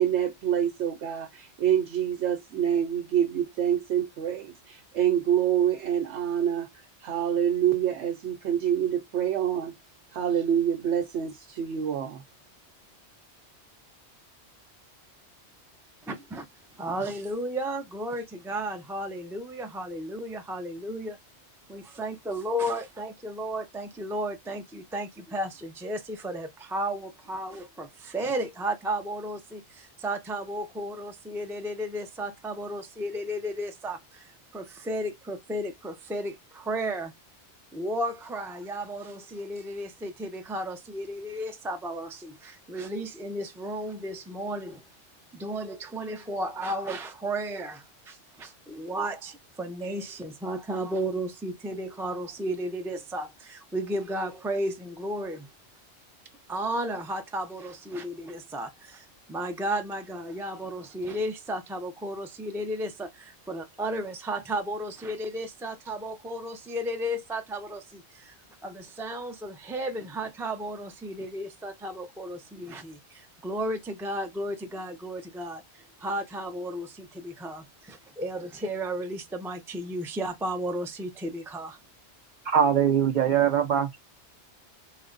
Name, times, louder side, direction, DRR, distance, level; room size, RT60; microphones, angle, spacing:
voice 1, 0.0-6.7 7.0-9.7 10.1-12.2, right 9 dB, 90° right, 0.9 m, -26 dB
voice 2, 16.0-16.5 16.8-21.2 21.7-37.1 37.7-44.8 45.3-55.5 56.5-68.3 68.6-81.8, right 1 dB, 5° right, 0.3 m, -34 dB
voice 3, 82.5-84.0, right 8 dB, 55° right, 0.5 m, -22 dB
3.2 x 2.1 x 3.7 m
omnidirectional pair, 1.2 m